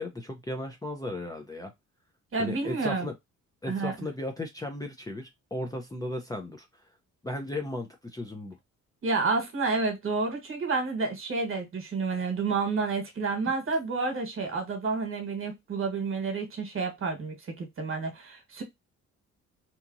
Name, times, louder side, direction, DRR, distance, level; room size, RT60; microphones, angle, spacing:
voice 1, 0.0-1.7 2.4-3.1 3.6-6.7 7.2-8.6, left 1 dB, 10° left, 0.6 m, -35 dB
voice 2, 2.3-3.1 3.7-3.9 9.0-18.6, right 4 dB, 45° right, 1.3 m, -30 dB
2.9 x 2.4 x 2.5 m
cardioid pair, 90°, 30 cm